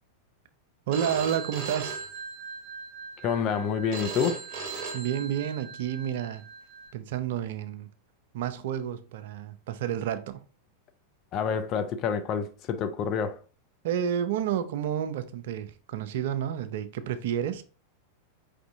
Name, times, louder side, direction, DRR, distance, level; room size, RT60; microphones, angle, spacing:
Telephone, 0.9-6.9, right 4 dB, 40° right, 0.9 m, -39 dB
voice 1, 0.9-2.1 4.9-6.4 6.9-7.9 8.3-10.4 13.8-17.6, right 9 dB, 55° right, 0.4 m, -30 dB
voice 2, 3.2-4.4 11.3-13.4, left 6 dB, 35° left, 0.4 m, -28 dB
4.9 x 3.4 x 2.6 m
figure-of-eight pair, 90°, 0 cm